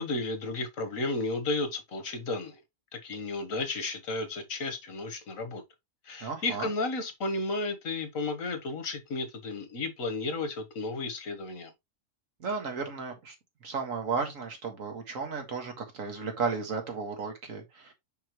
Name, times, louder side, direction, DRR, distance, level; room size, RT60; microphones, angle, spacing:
voice 1, 0.0-2.6 3.0-5.6 6.0-11.7, left 2 dB, 85° left, 1.7 m, -33 dB
voice 2, 6.2-6.7 12.4-13.4 13.6-17.9, right 5 dB, 85° right, 2.0 m, -34 dB
5.7 x 5.6 x 3.0 m
omnidirectional pair, 1.4 m